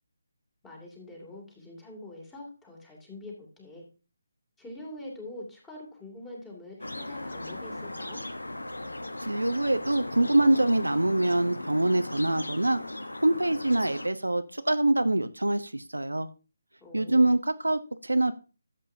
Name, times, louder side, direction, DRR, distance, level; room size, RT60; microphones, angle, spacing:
voice 1, 0.6-3.9 4.6-8.3 16.8-17.3, left 1 dB, 10° left, -1 dB, 2.7 m, -44 dB
sound 1, 6.8-14.1, left 1 dB, 80° left, 1.0 m, -38 dB
voice 2, 9.2-12.8 13.2-16.3 16.9-18.3, right 1 dB, 85° right, 10 dB, 0.8 m, -24 dB
13.0 x 7.8 x 2.8 m, 0.33 s
figure-of-eight pair, 150°, 0 cm